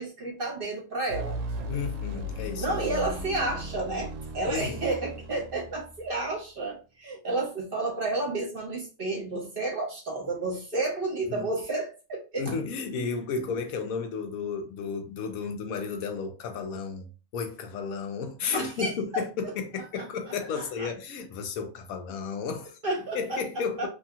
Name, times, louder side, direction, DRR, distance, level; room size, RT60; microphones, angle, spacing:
voice 1, 0.0-1.4 2.6-12.5 18.5-18.9 20.0-20.1 20.6-20.9 22.8-23.9, right 2 dB, 45° right, 1.1 m, -31 dB
sound 1, 1.1-6.4, left 1 dB, 70° right, 0.9 m, -37 dB
voice 2, 1.7-2.8 4.5-4.8 11.3-11.5 12.4-22.8 23.1-23.9, left 5 dB, 85° left, 1.1 m, -33 dB
2.8 x 2.7 x 2.4 m
omnidirectional pair, 1.5 m